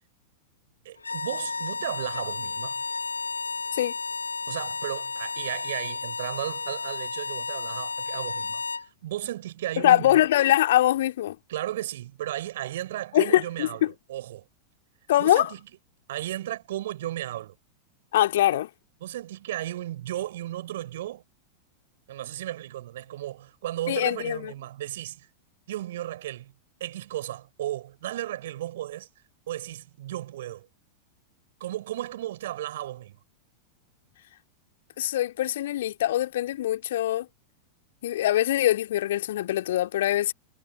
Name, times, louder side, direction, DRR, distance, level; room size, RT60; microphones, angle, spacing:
voice 1, 0.8-2.8 4.5-10.1 11.5-14.5 15.2-15.6 16.1-17.5 19.0-21.2 22.1-25.3 25.7-26.5 26.8-29.1 29.5-30.7 31.6-33.2, right 13 dB, 55° right, 4.7 m, -34 dB
sound 1, 1.0-8.9, left 4 dB, 80° left, 1.2 m, -33 dB
voice 2, 9.8-11.4 13.1-13.9 15.1-15.5 18.1-18.7 23.9-24.5 35.0-37.3 38.0-40.3, left 13 dB, 55° left, 2.5 m, -23 dB
figure-of-eight pair, 90°, 0 cm